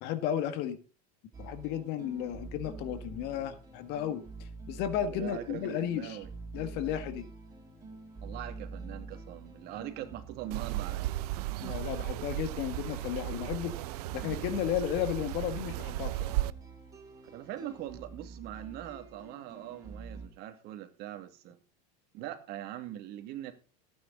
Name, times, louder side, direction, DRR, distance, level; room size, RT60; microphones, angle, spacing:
voice 1, 0.0-0.8 1.4-6.2 6.5-7.3 11.6-13.7 14.1-16.3, left 10 dB, 55° left, 11 dB, 1.8 m, -34 dB
sound 1, 1.3-20.3, right 3 dB, 15° right, 7.2 m, -48 dB
voice 2, 5.1-6.3 8.2-11.1 17.3-21.6 22.1-23.5, right 12 dB, 55° right, 7 dB, 2.3 m, -42 dB
sound 2, 10.5-16.5, right 16 dB, 70° right, 0.7 m, -35 dB
15.5 x 9.3 x 4.0 m, 0.34 s
supercardioid pair, 110°, 20 cm